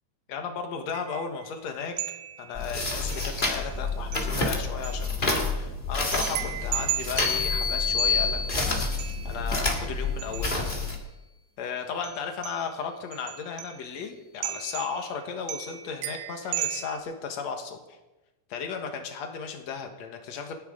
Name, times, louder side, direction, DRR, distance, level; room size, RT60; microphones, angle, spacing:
voice 1, 0.3-2.0 2.4-8.7 9.2-10.6 11.6-18.0 18.5-20.5, left 6 dB, 55° left, 4 dB, 2.1 m, -35 dB
sound 1, 0.9-1.5 2.0-2.6 3.1-3.8 4.1-5.0 6.1-8.4 8.9-10.7 12.0-12.7 13.1-14.0 14.4-15.2 15.5-17.0, right 12 dB, 75° right, 2.3 m, -36 dB
sound 2, 2.6-11.0, left 3 dB, 30° left, 0.8 m, -29 dB
sound 3, 7.2-9.1, left 6 dB, 85° left, 8.8 m, -28 dB
28.0 x 10.0 x 3.8 m, 1.1 s
omnidirectional pair, 4.7 m